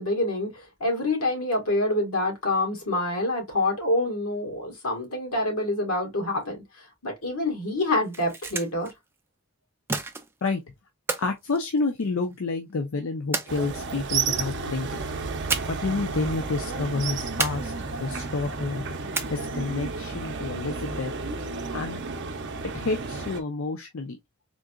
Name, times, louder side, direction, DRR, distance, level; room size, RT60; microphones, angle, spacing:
voice 1, 0.0-6.6 7.0-8.9, left 2 dB, 85° left, 1.7 m, -26 dB
sound 1, 8.0-8.9 9.9-10.5 11.1-12.3 13.3-14.1 15.5-16.0 16.2-16.3 17.4-18.1 19.1-19.7, right 4 dB, 10° right, 0.3 m, -32 dB
voice 2, 11.2-15.0 15.7-17.7 18.0-18.9 19.3-21.1 21.7-22.0 22.6-24.2, left 3 dB, 65° left, 0.5 m, -29 dB
sound 2, 13.5-23.4, right 4 dB, 55° right, 0.6 m, -32 dB
3.8 x 2.8 x 2.4 m
head